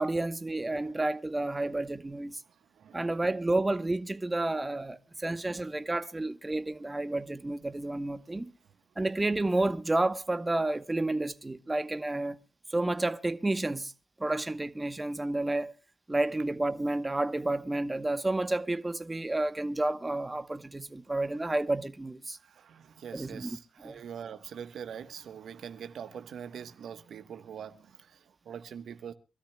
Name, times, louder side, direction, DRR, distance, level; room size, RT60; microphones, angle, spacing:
voice 1, 0.0-2.4 2.9-8.5 9.0-12.4 12.7-13.9 14.2-15.7 16.1-22.4 23.1-23.6 23.8-24.0, right 2 dB, 20° right, 1.0 m, -30 dB
voice 2, 2.8-3.1 5.4-5.6 22.6-27.7 28.5-29.1, right 8 dB, 65° right, 1.2 m, -43 dB
25.5 x 13.0 x 2.3 m
hypercardioid pair, 45°, 0 cm